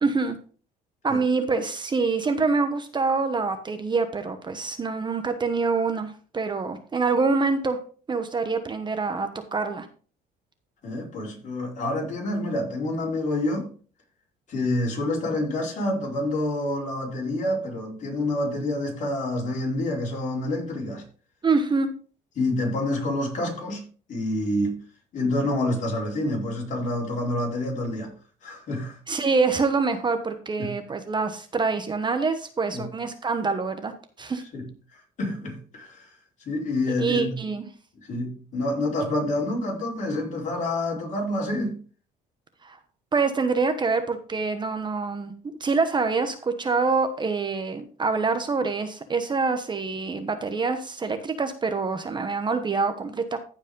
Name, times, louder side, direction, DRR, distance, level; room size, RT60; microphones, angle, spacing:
voice 1, 0.0-0.4 1.0-7.8 8.1-9.9 21.4-21.9 29.1-33.9 34.2-34.4 37.0-37.6 42.6-42.8 43.1-45.3 45.6-53.4, right 4 dB, 25° right, 1.1 m, -25 dB
voice 2, 10.8-13.7 14.5-21.0 22.4-23.8 24.1-24.8 25.1-28.1 28.4-29.0 30.6-30.7 32.7-32.9 34.5-36.1 36.4-37.4 38.0-41.8, left 1 dB, 45° left, 4.6 m, -28 dB
14.5 x 5.2 x 3.8 m
cardioid pair, 110°, 17 cm